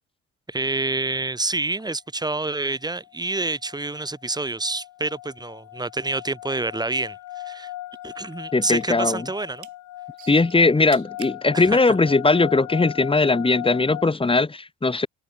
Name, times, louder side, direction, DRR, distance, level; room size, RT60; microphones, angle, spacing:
voice 1, 0.5-7.7 8.0-9.7 11.5-11.8, right 2 dB, 15° right, 1.1 m, -28 dB
sound 1, 1.8-1.9 2.2-2.6 3.0-14.0, left 15 dB, 85° left, 1.9 m, -38 dB
sound 2, 6.6-7.7 8.0-9.0 9.4-9.7 10.2-11.4 12.1-12.2, right 12 dB, 70° right, 2.2 m, -44 dB
voice 2, 8.5-9.2 10.3-15.1, left 3 dB, 20° left, 1.7 m, -19 dB
cardioid pair, 90°, 30 cm